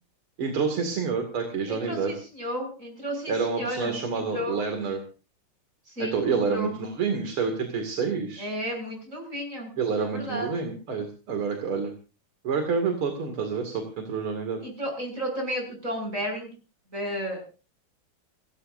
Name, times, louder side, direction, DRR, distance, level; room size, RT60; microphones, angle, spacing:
voice 1, 0.4-2.1 3.3-5.0 6.0-8.5 9.8-11.9 12.4-14.6, right 5 dB, 90° right, 5 dB, 3.3 m, -28 dB
voice 2, 1.7-4.6 5.9-6.8 8.4-9.7 10.0-10.5 14.6-16.5 16.9-17.5, equal, 35° right, 2 dB, 7.4 m, -33 dB
30.0 x 14.5 x 2.7 m, 0.34 s
omnidirectional pair, 2.3 m